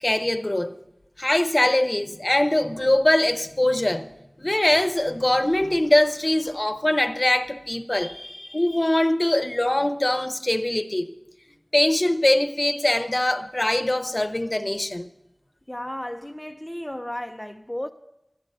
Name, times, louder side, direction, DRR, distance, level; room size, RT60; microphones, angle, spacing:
voice 1, 0.0-0.7 1.2-4.1 4.4-11.1 11.7-15.1, left 1 dB, 40° left, 0.8 m, -22 dB
voice 2, 15.7-17.9, left 1 dB, 20° left, 0.5 m, -33 dB
12.5 x 10.0 x 6.6 m
wide cardioid pair, 50°, 0 cm